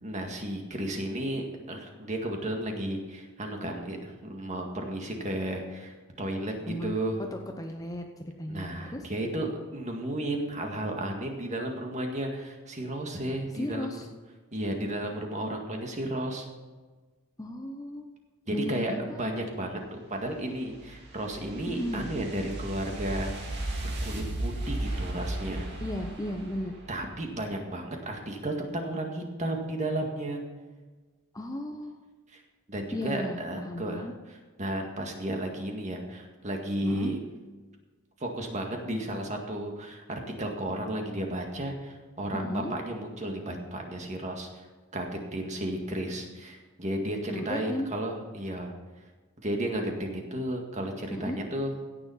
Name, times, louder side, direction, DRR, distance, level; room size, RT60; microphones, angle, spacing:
voice 1, 0.0-7.2 8.5-14.0 14.5-16.5 18.5-23.5 23.8-25.7 26.9-30.4 32.3-32.4 32.7-37.2 38.2-44.7 44.9-48.7 49.4-51.8, right 1 dB, 30° right, 2 dB, 1.9 m, -33 dB
voice 2, 6.7-8.0 8.4-9.1 13.5-14.1 17.4-18.1 18.5-19.2 21.7-22.0 25.8-26.8 31.3-32.0 32.9-34.1 36.8-37.1 42.3-42.7 47.3-47.9 51.1-51.4, left 1 dB, 15° left, 4 dB, 0.8 m, -35 dB
sound 1, 20.1-27.4, right 1 dB, 50° right, 2.4 m, -36 dB
16.5 x 7.0 x 5.7 m, 1.3 s
head